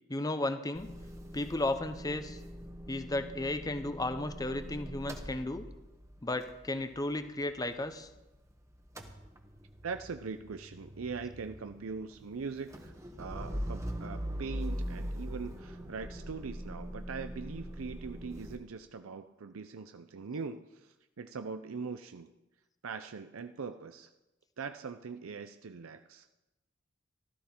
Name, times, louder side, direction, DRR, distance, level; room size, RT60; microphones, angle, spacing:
voice 1, 0.1-0.9 1.3-2.4 2.9-5.6 6.2-8.1, left 2 dB, 20° left, 10 dB, 0.7 m, -34 dB
Motor vehicle (road) / Engine starting / Idling, 0.7-8.5 8.7-18.6, equal, 15° right, 1.1 m, -42 dB
voice 2, 9.8-22.3 22.8-24.1 24.6-26.3, right 5 dB, 90° right, 8 dB, 0.6 m, -41 dB
15.5 x 12.5 x 4.5 m, 1.0 s
head